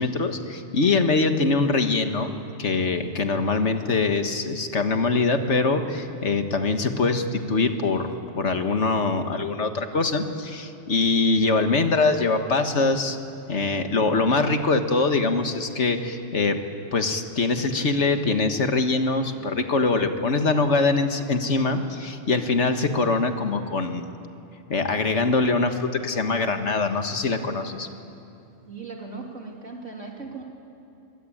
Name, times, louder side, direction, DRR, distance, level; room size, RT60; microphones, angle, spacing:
voice 1, 0.0-2.3 2.6-8.1 8.4-13.2 13.5-16.6 16.9-24.1 24.7-27.9, left 3 dB, 70° left, 7 dB, 1.9 m, -23 dB
voice 2, 28.7-30.4, right 4 dB, 90° right, 0 dB, 3.6 m, -38 dB
24.5 x 23.0 x 8.7 m, 2.6 s
omnidirectional pair, 1.2 m